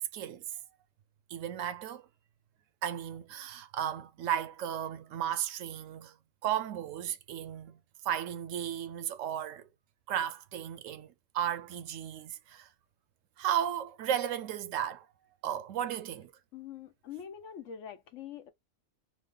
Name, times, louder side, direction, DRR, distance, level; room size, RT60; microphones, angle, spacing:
voice 1, 0.1-0.4 1.3-2.1 2.8-6.1 6.4-7.8 8.0-9.7 10.1-12.7 13.4-15.1 15.4-16.3, right 10 dB, 80° right, 0.9 m, -34 dB
voice 2, 16.5-18.5, left 8 dB, 75° left, 1.1 m, -44 dB
3.0 x 2.0 x 3.7 m
omnidirectional pair, 1.3 m